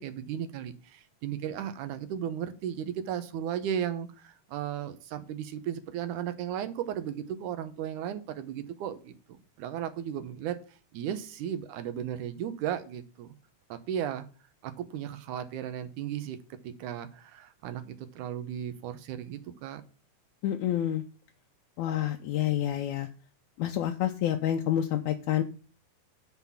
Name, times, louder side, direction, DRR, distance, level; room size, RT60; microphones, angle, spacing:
voice 1, 0.0-10.6 10.9-13.3 13.7-14.3 14.6-16.4 16.6-19.8, right 9 dB, 80° right, 9 dB, 2.3 m, -35 dB
voice 2, 20.4-21.0 21.8-23.1 23.6-25.4, left 11 dB, 80° left, 3 dB, 2.0 m, -28 dB
9.5 x 4.1 x 7.0 m, 0.37 s
omnidirectional pair, 3.6 m